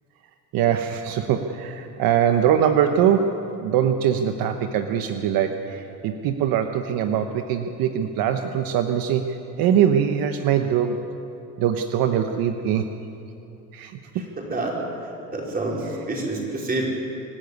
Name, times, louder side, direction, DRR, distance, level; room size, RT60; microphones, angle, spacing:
voice 1, 0.5-9.2 9.6-11.0 11.6-12.8 13.7-14.2, right 9 dB, 65° right, 6 dB, 1.1 m, -22 dB
voice 2, 14.1-16.9, right 2 dB, 25° right, -2 dB, 4.8 m, -28 dB
25.0 x 12.0 x 9.5 m, 2.8 s
cardioid pair, 140°, 38 cm